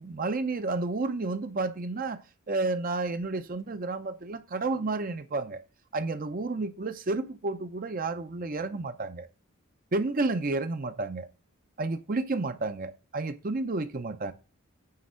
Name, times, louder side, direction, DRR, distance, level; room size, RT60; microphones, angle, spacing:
voice 1, 0.0-2.2 2.5-5.6 5.9-9.3 9.9-11.3 11.8-14.3, right 3 dB, 40° right, 0.6 m, -31 dB
9.6 x 3.5 x 6.2 m
head